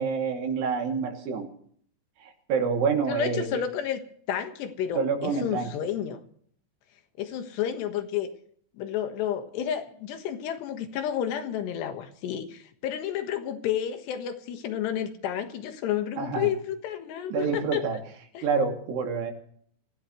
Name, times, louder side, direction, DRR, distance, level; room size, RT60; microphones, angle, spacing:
voice 1, 0.0-1.5 2.2-3.6 5.0-5.7 16.2-16.5 17.3-18.0 18.4-19.3, right 5 dB, 75° right, 2 dB, 4.8 m, -27 dB
voice 2, 3.1-4.0 4.3-6.2 7.2-8.3 8.8-17.8 18.4-18.5, left 9 dB, 85° left, 7 dB, 3.7 m, -31 dB
25.5 x 16.5 x 3.2 m, 0.63 s
omnidirectional pair, 4.8 m